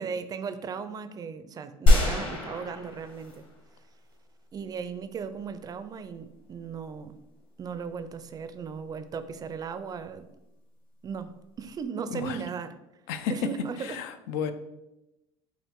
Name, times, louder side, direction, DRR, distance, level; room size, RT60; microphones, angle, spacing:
voice 1, 0.0-3.5 4.5-7.2 7.6-10.3 11.0-12.7 13.3-14.0, right 6 dB, 30° right, 11 dB, 0.4 m, -37 dB
sound 1, 1.9-3.6 4.1-4.2, left 2 dB, 45° left, 1.5 m, -23 dB
voice 2, 12.1-12.4 13.1-13.3 13.8-14.5, left 8 dB, 75° left, 9 dB, 0.4 m, -32 dB
5.9 x 2.5 x 3.6 m, 0.95 s
supercardioid pair, 95°, 12 cm